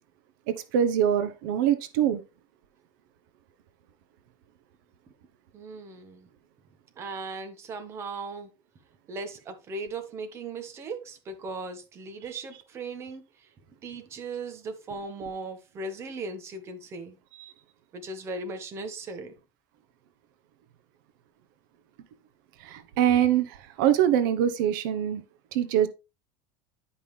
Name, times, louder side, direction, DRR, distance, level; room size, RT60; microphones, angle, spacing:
voice 1, 0.5-2.2 17.4-17.5 22.6-25.2 25.5-25.9, right 10 dB, 75° right, 0.9 m, -24 dB
voice 2, 5.5-6.3 7.0-8.5 9.1-13.5 13.8-17.2 17.9-19.3, right 3 dB, 25° right, 1.3 m, -38 dB
10.5 x 5.5 x 3.3 m
cardioid pair, 165°, 11 cm